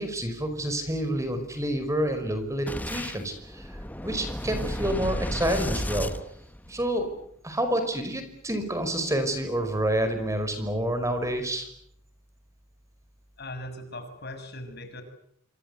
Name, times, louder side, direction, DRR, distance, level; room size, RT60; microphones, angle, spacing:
voice 1, 0.0-6.1 6.7-7.1 7.4-11.7, right 1 dB, 15° right, 8 dB, 5.3 m, -28 dB
Boom, 2.7-7.0, left 1 dB, 10° left, 1.1 m, -33 dB
voice 2, 13.4-15.0, left 1 dB, 55° left, 8 dB, 6.7 m, -39 dB
27.5 x 26.0 x 8.2 m, 0.69 s
head